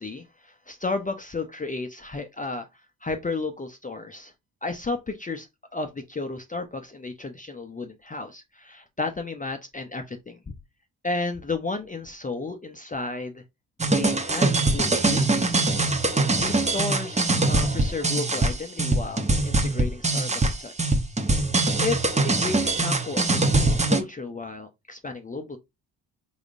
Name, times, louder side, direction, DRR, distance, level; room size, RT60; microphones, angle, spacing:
voice 1, 0.0-2.7 3.0-4.3 4.6-5.5 5.7-10.4 11.0-13.4 13.9-15.7 16.1-21.0 21.3-21.4 21.8-25.6, left 3 dB, 20° left, 0.6 m, -33 dB
sound 1, 13.8-24.0, right 2 dB, 15° right, 0.7 m, -23 dB
3.9 x 3.5 x 2.5 m
supercardioid pair, 60°, 41 cm